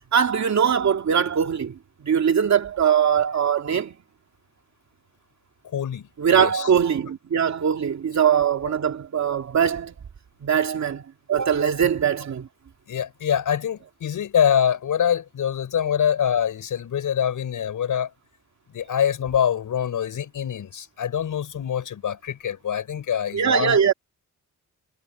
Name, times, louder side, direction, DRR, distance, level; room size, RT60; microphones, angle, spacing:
voice 1, 0.1-3.9 6.2-9.9 10.4-11.0 11.3-12.5 23.3-23.9, right 7 dB, 60° right, 2.7 m, -21 dB
voice 2, 5.6-6.7 12.9-18.1 18.7-23.8, left 9 dB, 85° left, 5.7 m, -25 dB
wide cardioid pair, 120°, 31 cm